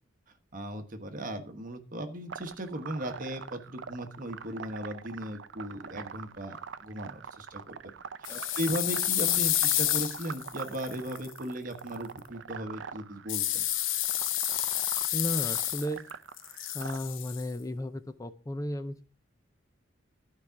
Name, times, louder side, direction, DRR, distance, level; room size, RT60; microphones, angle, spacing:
voice 1, 0.5-7.9 8.2-13.6, right 1 dB, 40° right, 7 dB, 1.2 m, -37 dB
sound 1, 2.3-17.0, right 6 dB, 65° right, 0.5 m, -44 dB
sound 2, 8.2-11.3 13.3-16.1 16.4-17.4, left 13 dB, 70° left, 0.7 m, -29 dB
voice 2, 15.1-16.1 16.7-19.0, left 1 dB, 15° left, 11 dB, 0.5 m, -34 dB
12.0 x 4.9 x 5.8 m, 0.38 s
head